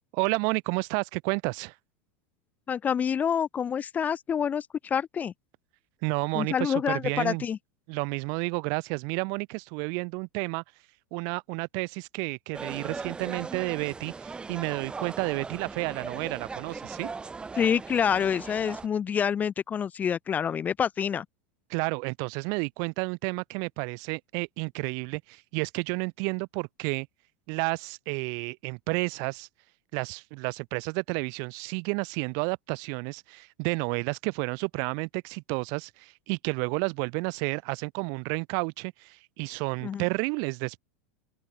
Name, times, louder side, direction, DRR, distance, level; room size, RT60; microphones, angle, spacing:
voice 1, 0.1-1.7 6.0-7.4 7.9-10.6 11.1-17.1 21.7-27.1 27.5-29.5 29.9-40.8, right 37 dB, 55° right, 1.9 m, -31 dB
voice 2, 2.7-5.3 6.3-7.6 17.6-21.3 39.8-40.0, left 7 dB, 20° left, 0.6 m, -27 dB
sound 1, 12.5-18.9, right 4 dB, 15° right, 1.5 m, -39 dB
supercardioid pair, 135°, 7 cm